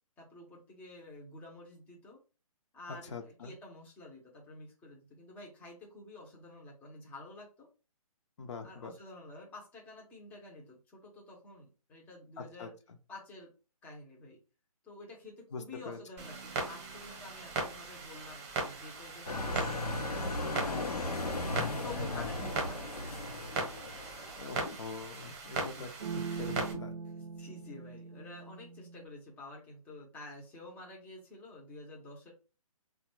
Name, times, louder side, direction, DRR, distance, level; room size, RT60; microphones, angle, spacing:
voice 1, 0.2-2.2 2.7-7.7 8.6-12.7 13.1-13.5 13.8-14.4 14.8-21.3 21.7-23.3 25.4-26.0 27.4-32.3, left 2 dB, 10° left, -2 dB, 0.6 m, -50 dB
voice 2, 2.9-3.5 8.4-8.9 12.4-12.7 15.5-16.0 20.6-21.1 22.1-22.5 24.4-26.9, left 4 dB, 50° left, 5 dB, 0.6 m, -43 dB
Clock, 16.2-26.7, right 3 dB, 25° right, 0.8 m, -39 dB
sound 1, 16.2-18.5 21.6-21.7 22.4-22.9 23.6-24.4 26.0-29.1, right 6 dB, 80° right, 0.4 m, -44 dB
sound 2, 19.3-24.9, left 2 dB, 90° left, 0.7 m, -37 dB
3.6 x 2.2 x 3.0 m, 0.32 s
figure-of-eight pair, 140°, 19 cm